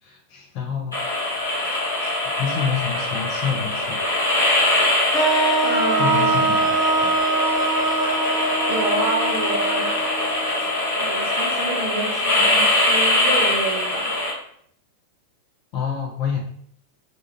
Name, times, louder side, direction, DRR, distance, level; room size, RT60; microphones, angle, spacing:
voice 1, 0.0-4.1 6.0-7.2 15.7-16.4, left 7 dB, 45° left, -1 dB, 0.6 m, -29 dB
sound 1, 0.9-14.3, left 2 dB, 85° left, 1.1 m, -22 dB
sound 2, 5.1-11.2, right 3 dB, 5° left, 1.0 m, -23 dB
voice 2, 5.6-6.5 8.7-9.9 11.0-14.2, right 2 dB, 55° right, -1 dB, 0.6 m, -28 dB
2.6 x 2.4 x 2.9 m, 0.63 s
figure-of-eight pair, 90°, 0 cm